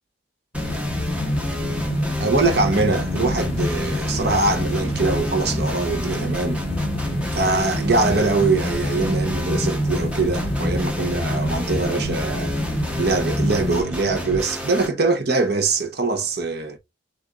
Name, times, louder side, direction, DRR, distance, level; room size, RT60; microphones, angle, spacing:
sound 1, 0.5-13.8, left 2 dB, 30° left, 0.9 m, -27 dB
sound 2, 0.5-14.9, right 2 dB, 5° right, 0.8 m, -30 dB
voice 1, 2.2-6.6 7.3-12.5 13.0-16.8, right 3 dB, 55° right, 0.9 m, -22 dB
6.5 x 2.6 x 2.4 m
head